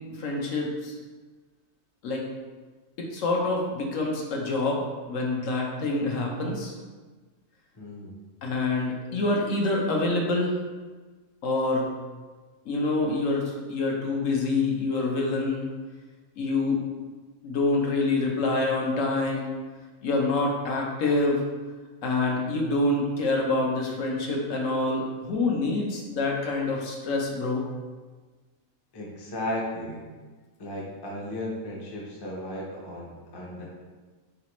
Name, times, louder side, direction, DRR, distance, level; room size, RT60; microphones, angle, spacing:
voice 1, 0.2-1.0 2.0-2.3 3.0-6.7 8.4-10.6 11.4-11.9 12.7-15.7 16.4-16.8 17.4-19.5 20.0-21.4 22.0-27.6, left 2 dB, 75° left, -1 dB, 1.1 m, -26 dB
voice 2, 7.7-8.2 28.9-30.0 30.6-33.7, left 1 dB, 30° left, -3 dB, 0.5 m, -35 dB
4.1 x 3.3 x 2.9 m, 1.3 s
omnidirectional pair, 1.4 m